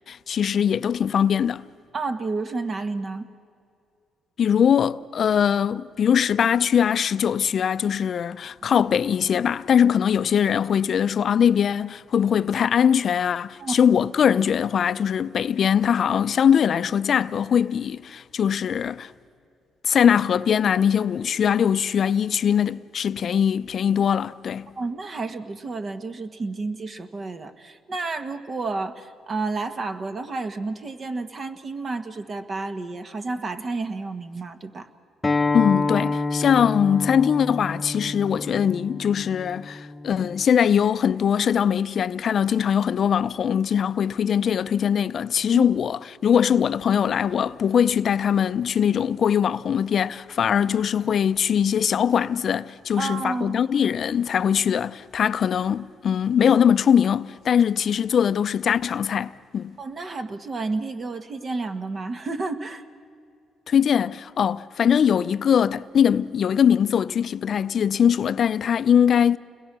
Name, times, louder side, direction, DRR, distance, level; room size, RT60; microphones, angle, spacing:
voice 1, 0.1-1.6 4.4-19.1 19.8-24.7 35.5-59.7 63.7-69.4, left 8 dB, 55° left, 0.6 m, -21 dB
voice 2, 1.9-3.3 8.6-8.8 13.6-13.8 24.8-34.9 45.5-45.6 53.0-53.6 59.8-62.8, right 3 dB, 40° right, 1.4 m, -31 dB
Acoustic guitar, 35.2-40.4, left 3 dB, 20° left, 0.9 m, -28 dB
30.0 x 21.5 x 6.1 m
cardioid pair, 90°, 0 cm